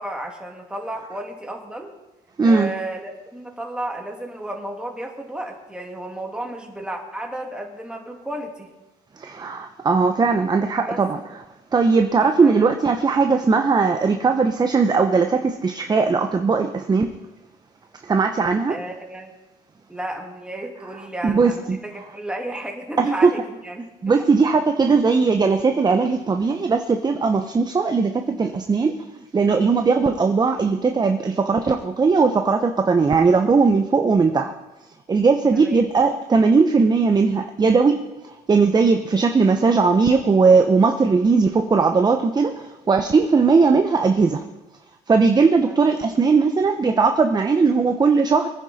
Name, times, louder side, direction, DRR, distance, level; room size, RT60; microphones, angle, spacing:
voice 1, 0.0-1.9 2.4-8.7 10.9-11.0 12.4-12.7 18.7-19.3 19.9-24.3 35.5-35.8 45.6-45.8, right 1 dB, 5° right, 1 dB, 2.7 m, -33 dB
voice 2, 2.4-2.7 9.2-11.2 11.7-17.1 18.1-18.7 21.2-21.5 23.0-23.3 24.0-28.9 29.3-34.5 35.1-38.0 38.5-44.4 45.1-48.5, right 4 dB, 25° right, 6 dB, 0.9 m, -18 dB
23.5 x 9.9 x 4.3 m, 1.1 s
cardioid pair, 110°, 17 cm